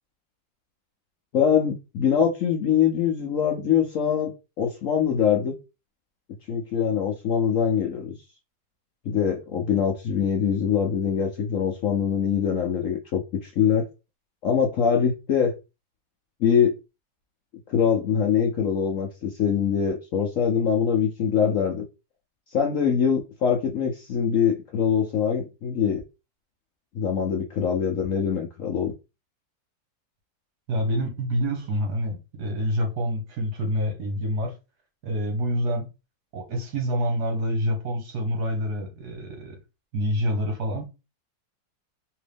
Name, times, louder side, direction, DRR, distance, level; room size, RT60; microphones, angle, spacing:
voice 1, 1.3-4.3 4.6-5.5 6.5-8.1 9.1-13.8 14.4-15.5 16.4-16.7 17.7-21.8 22.5-26.0 26.9-28.9, left 7 dB, 65° left, 0.8 m, -23 dB
voice 2, 30.7-34.5 35.0-35.9 36.3-39.6 39.9-40.9, equal, 65° right, 1.7 m, -27 dB
3.7 x 3.0 x 3.3 m
omnidirectional pair, 1.9 m